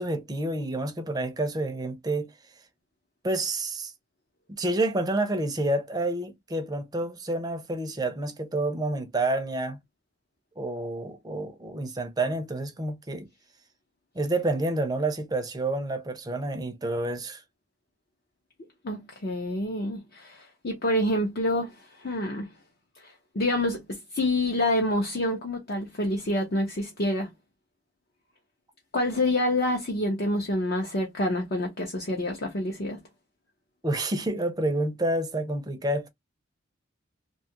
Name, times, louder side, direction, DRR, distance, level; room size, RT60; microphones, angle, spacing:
voice 1, 0.0-2.3 3.2-3.9 4.5-9.8 10.6-13.3 14.1-17.4 33.8-36.1, right 2 dB, 20° right, 0.5 m, -29 dB
voice 2, 18.8-22.5 23.0-27.3 28.9-33.0, left 1 dB, 50° left, 0.6 m, -27 dB
2.7 x 2.3 x 2.8 m
head